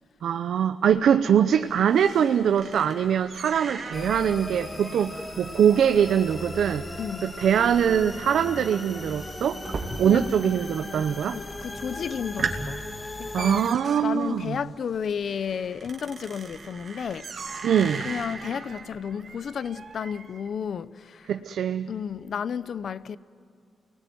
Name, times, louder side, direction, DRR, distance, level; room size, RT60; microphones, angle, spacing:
voice 1, 0.2-6.8 7.2-9.6 10.0-11.4 13.3-14.6 17.6-18.1 21.3-21.9, right 8 dB, 80° right, 0.8 m, -23 dB
sound 1, 0.9-10.5 10.7-11.3 11.7-11.8 12.2-20.5, right 4 dB, 50° right, 2.6 m, -39 dB
sound 2, 3.9-13.7, left 1 dB, 25° left, 2.3 m, -38 dB
voice 2, 7.0-7.3 10.0-10.3 11.3-12.8 13.2-13.6 14.0-17.7 18.0-21.3 21.9-23.2, left 7 dB, 60° left, 0.7 m, -32 dB
29.0 x 20.0 x 9.3 m
cardioid pair, 115°, 0 cm